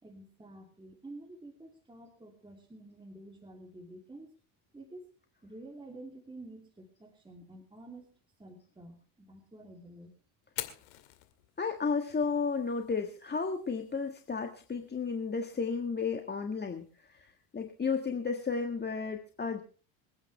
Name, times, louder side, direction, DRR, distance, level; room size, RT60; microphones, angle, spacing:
voice 1, 0.0-4.4 4.7-5.1 5.4-8.1 8.4-10.1, right 2 dB, 10° right, 1 dB, 2.8 m, -50 dB
Fire, 10.4-18.4, left 16 dB, 85° left, 2.3 m, -50 dB
voice 2, 11.6-19.6, left 5 dB, 20° left, 5 dB, 1.6 m, -33 dB
26.5 x 9.6 x 3.3 m, 0.39 s
supercardioid pair, 95°, 46 cm